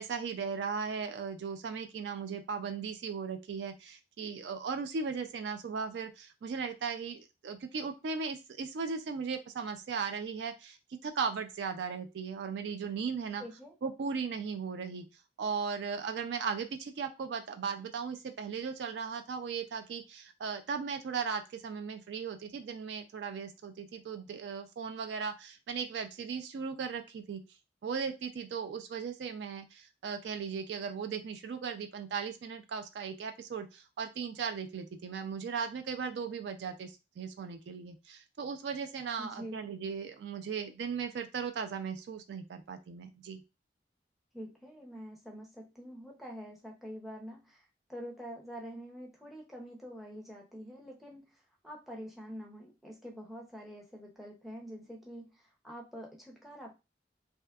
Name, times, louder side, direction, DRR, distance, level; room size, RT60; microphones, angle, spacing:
voice 1, 0.0-10.8 11.0-13.4 13.8-15.1 15.4-27.4 27.8-43.4, right 5 dB, 70° right, 8 dB, 0.3 m, -37 dB
voice 2, 13.4-13.7 39.2-39.6 44.3-47.6 47.9-51.3 51.6-56.8, equal, ahead, -1 dB, 0.5 m, -46 dB
2.6 x 2.3 x 2.2 m, 0.26 s
head